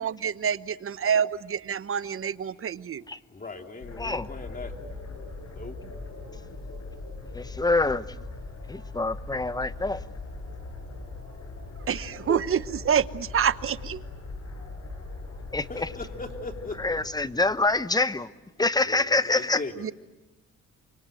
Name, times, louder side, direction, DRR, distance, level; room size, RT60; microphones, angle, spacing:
voice 1, 0.0-3.0 11.9-14.0 19.7-19.9, right 8 dB, 45° right, 15 dB, 1.0 m, -27 dB
voice 2, 3.3-4.7 5.6-5.7 15.7-17.0 18.8-19.9, left 3 dB, 30° left, 4 dB, 3.2 m, -38 dB
sound 1, 3.8-18.1, left 3 dB, 55° left, 6.7 m, -40 dB
voice 3, 4.0-4.3 7.3-8.0 8.7-10.0 12.3-12.4 15.5-15.9 16.8-18.3 18.6-19.6, left 3 dB, 15° left, 14 dB, 1.0 m, -26 dB
28.0 x 25.5 x 7.8 m, 1.1 s
cardioid pair, 90°, 30 cm